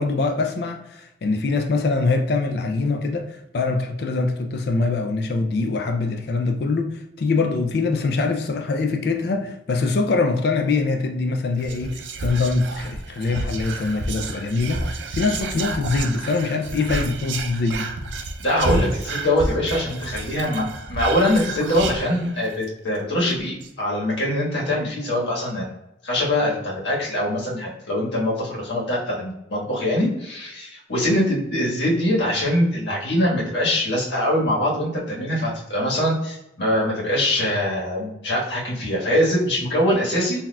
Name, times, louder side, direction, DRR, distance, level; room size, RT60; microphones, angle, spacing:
voice 1, 0.0-17.9, left 3 dB, 60° left, 4 dB, 0.4 m, -23 dB
Whispering, 11.6-22.6 23.0-23.1 23.3-23.7, right 2 dB, 85° right, 0.5 m, -30 dB
voice 2, 18.4-25.7 26.0-40.4, left 1 dB, 75° left, -5 dB, 1.4 m, -23 dB
3.9 x 2.8 x 2.2 m, 0.85 s
head